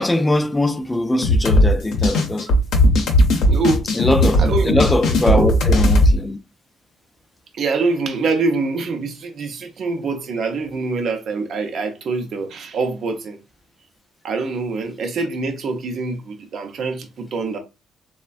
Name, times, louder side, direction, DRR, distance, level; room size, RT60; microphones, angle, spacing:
voice 1, 0.0-2.5 3.9-6.4, left 1 dB, 15° left, 0.3 m, -21 dB
sound 1, 1.2-6.1, left 1 dB, 80° left, 0.7 m, -16 dB
voice 2, 3.5-3.9 4.4-4.8 5.2-5.6 7.5-13.4 14.2-17.6, right 3 dB, 60° right, 0.5 m, -24 dB
3.2 x 2.1 x 2.3 m
cardioid pair, 90°, 0 cm